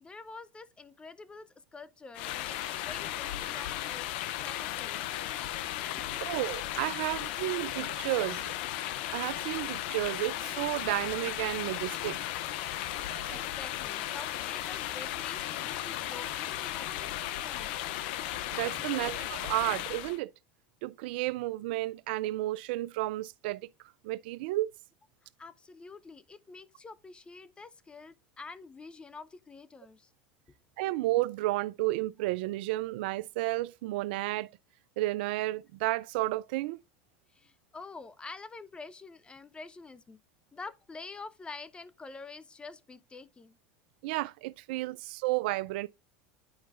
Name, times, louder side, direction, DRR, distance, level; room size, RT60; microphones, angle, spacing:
voice 1, 0.0-4.1 4.4-5.0 6.1-6.4 12.9-17.8 19.0-19.1 25.2-30.1 37.3-40.2 40.5-43.6 44.9-45.0, left 4 dB, 15° left, 0.6 m, -47 dB
sound 1, 2.1-20.2, left 13 dB, 70° left, 0.6 m, -35 dB
voice 2, 6.3-8.5 9.1-12.2 12.9-13.5 18.5-20.3 20.8-23.7 24.0-24.7 30.8-34.5 35.0-36.8 44.0-45.9, right 18 dB, 70° right, 0.3 m, -32 dB
10.0 x 4.7 x 2.4 m
hypercardioid pair, 100°, 6 cm